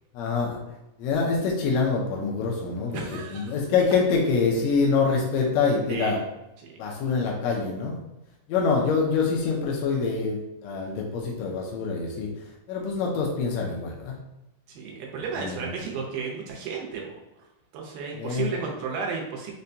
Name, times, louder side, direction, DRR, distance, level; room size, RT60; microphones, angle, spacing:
voice 1, 0.1-0.6 1.0-3.0 3.3-6.2 6.8-8.0 8.5-12.3 12.7-14.1 15.4-15.7 18.2-18.5, left 4 dB, 80° left, -1 dB, 1.7 m, -25 dB
voice 2, 2.9-3.6 5.9-6.2 6.6-6.8 14.7-17.2 17.7-19.5, right 5 dB, 85° right, 0 dB, 2.3 m, -33 dB
5.5 x 2.2 x 2.6 m, 0.91 s
omnidirectional pair, 3.7 m